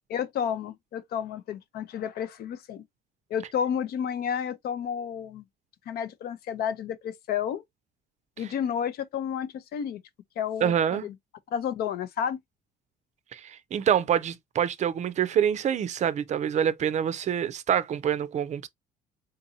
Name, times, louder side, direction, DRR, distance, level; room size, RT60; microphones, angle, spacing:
voice 1, 0.1-2.8 3.3-5.5 5.9-7.6 8.4-10.0 10.4-11.1 11.5-12.4, left 8 dB, 65° left, 0.6 m, -31 dB
voice 2, 10.6-11.1 13.3-18.7, right 9 dB, 45° right, 0.5 m, -26 dB
3.9 x 2.7 x 2.6 m
cardioid pair, 110°, 17 cm